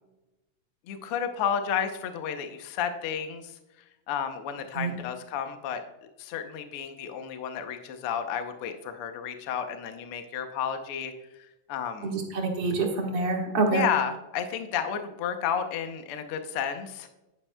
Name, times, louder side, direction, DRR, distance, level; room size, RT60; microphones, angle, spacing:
voice 1, 0.9-3.6 4.1-5.8 6.2-12.1 13.7-17.1, left 8 dB, 75° left, 7 dB, 1.3 m, -32 dB
voice 2, 12.0-13.9, right 3 dB, 55° right, 0 dB, 2.3 m, -26 dB
10.5 x 10.0 x 2.2 m, 0.97 s
omnidirectional pair, 3.3 m